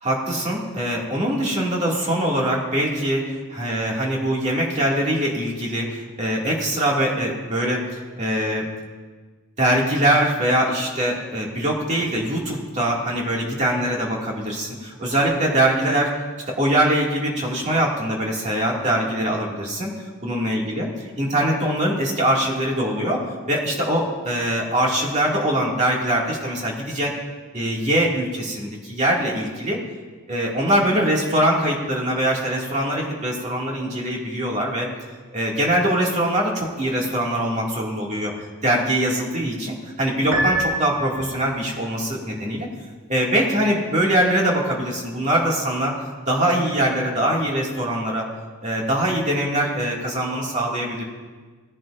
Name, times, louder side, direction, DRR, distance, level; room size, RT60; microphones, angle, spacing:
voice 1, 0.0-8.7 9.6-19.9 20.2-20.9 21.2-27.1 27.5-29.8 30.3-34.9 35.3-38.3 38.6-42.7 43.1-46.0 46.3-48.3 48.6-51.0, right 1 dB, 30° right, -3 dB, 2.2 m, -23 dB
Piano, 40.3-41.6, right 1 dB, 70° right, 2.1 m, -25 dB
18.5 x 11.0 x 2.6 m, 1.4 s
head